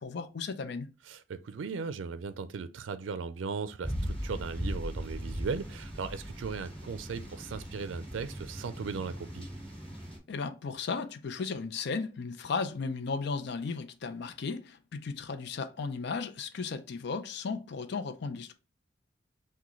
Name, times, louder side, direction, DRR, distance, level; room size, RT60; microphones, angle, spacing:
voice 1, 0.0-0.9 10.3-18.5, left 4 dB, 60° left, 0.5 m, -35 dB
voice 2, 1.1-9.5, right 5 dB, 90° right, 0.4 m, -37 dB
sound 1, 3.8-10.2, equal, 10° left, 2.0 m, -39 dB
5.9 x 2.2 x 3.0 m
head